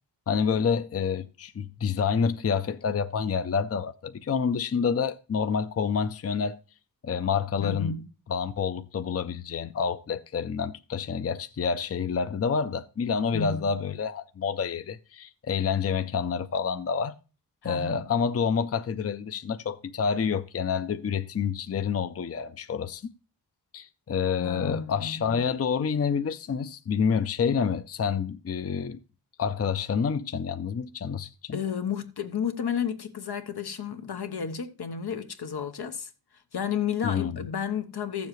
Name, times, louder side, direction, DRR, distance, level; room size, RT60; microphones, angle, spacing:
voice 1, 0.3-6.6 7.0-7.9 8.3-17.1 17.6-23.0 23.7-29.0 29.4-31.6 37.0-37.3, left 6 dB, 40° left, 0.5 m, -28 dB
voice 2, 7.6-8.1 13.3-13.7 17.6-18.1 24.4-25.4 31.5-36.1 36.5-38.3, left 7 dB, 85° left, 1.0 m, -32 dB
14.5 x 7.1 x 3.1 m
wide cardioid pair, 105°, 38 cm